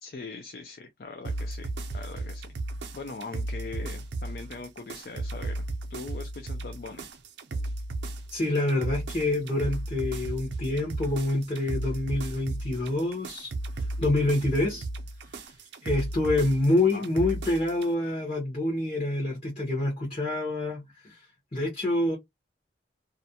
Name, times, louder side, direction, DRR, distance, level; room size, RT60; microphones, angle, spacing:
voice 1, 0.0-2.5 2.9-5.6 5.9-7.0 16.9-17.0, left 4 dB, 50° left, 0.4 m, -41 dB
sound 1, 1.2-17.9, right 2 dB, 70° right, 0.5 m, -35 dB
voice 2, 8.3-13.5 14.0-14.9 15.8-21.2 21.5-22.2, left 2 dB, 30° left, 0.8 m, -27 dB
2.4 x 2.1 x 2.7 m
head